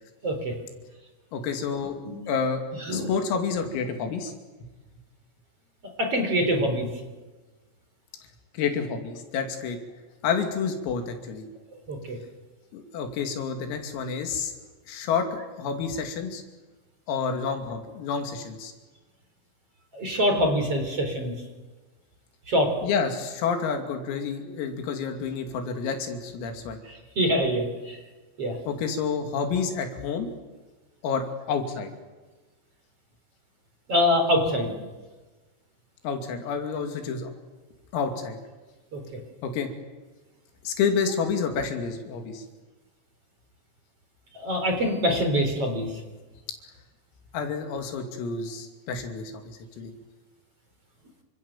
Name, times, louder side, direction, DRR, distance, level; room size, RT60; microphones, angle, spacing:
voice 1, 0.2-0.5 2.0-2.2 2.9-3.1 6.0-6.9 11.9-12.2 19.9-21.3 22.5-22.7 26.9-28.0 28.4-28.6 33.9-34.7 38.9-39.0 44.4-45.9, equal, 30° right, 5 dB, 4.2 m, -24 dB
voice 2, 1.3-2.0 2.3-2.6 2.9-4.3 8.6-9.8 10.2-11.4 12.7-14.5 14.9-15.3 15.6-16.4 17.1-18.7 22.8-26.8 28.7-30.3 31.0-31.9 36.0-37.3 37.9-38.4 39.4-39.7 40.7-42.4 47.3-49.9, left 6 dB, 85° left, 5 dB, 5.3 m, -29 dB
30.0 x 25.5 x 7.4 m, 1.2 s
omnidirectional pair, 5.9 m